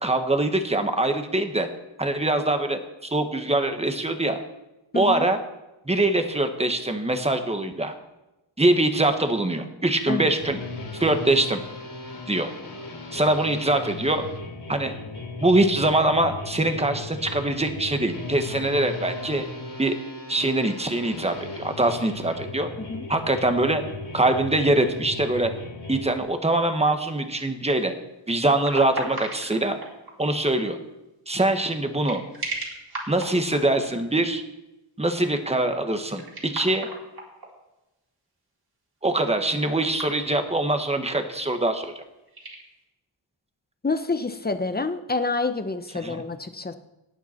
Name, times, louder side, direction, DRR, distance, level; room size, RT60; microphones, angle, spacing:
voice 1, 0.0-1.7 2.0-4.4 4.9-5.4 5.9-7.9 8.6-10.6 10.9-11.6 12.3-12.5 13.1-14.2 14.7-14.9 15.4-19.4 19.8-19.9 20.3-22.7 23.1-23.8 24.1-25.5 25.9-27.9 28.3-29.8 30.2-30.8 31.3-32.2 33.1-34.4 35.0-36.9 39.0-42.0 46.0-46.2, right 2 dB, 15° right, 6 dB, 1.3 m, -23 dB
voice 2, 4.9-5.3 10.1-10.3 22.9-23.1 43.8-46.7, left 3 dB, 20° left, 9 dB, 0.9 m, -28 dB
sound 1, 10.4-26.0, left 3 dB, 55° left, 3.4 m, -37 dB
sound 2, 26.3-26.7 28.3-30.3 31.8-34.0 35.9-37.5 39.3-40.6 40.9-41.0 42.1-42.6, right 2 dB, 50° right, 4.1 m, -37 dB
18.0 x 9.2 x 4.5 m, 0.97 s
wide cardioid pair, 95°, 48 cm